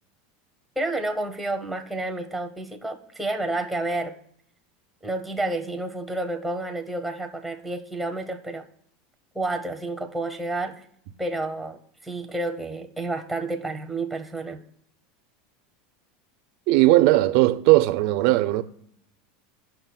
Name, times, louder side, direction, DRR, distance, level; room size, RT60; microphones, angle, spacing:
voice 1, 0.8-4.2 5.0-8.7 9.3-10.8 11.2-14.6, right 2 dB, ahead, 0.8 m, -30 dB
voice 2, 16.7-18.6, right 17 dB, 55° right, 0.4 m, -18 dB
18.0 x 5.9 x 2.3 m
supercardioid pair, 155°, 0 cm